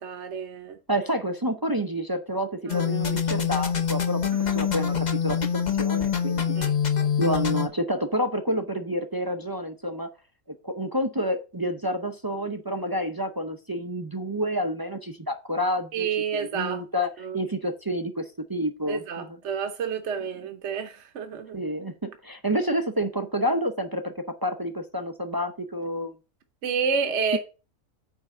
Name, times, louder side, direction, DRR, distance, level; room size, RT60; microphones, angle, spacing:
voice 1, 0.0-0.8 2.7-2.9 4.3-4.4 6.6-6.7 7.0-7.1 15.9-16.8 17.2-17.4 18.9-21.6 26.6-27.4, right 6 dB, 55° right, 1.1 m, -29 dB
voice 2, 0.9-4.2 4.5-5.4 5.8-6.7 7.2-10.1 10.6-16.1 16.3-19.4 21.5-26.2 27.3-27.4, equal, 25° right, 0.4 m, -29 dB
sound 1, 2.7-7.7, left 7 dB, 35° left, 0.9 m, -25 dB
9.5 x 3.6 x 6.6 m
omnidirectional pair, 1.5 m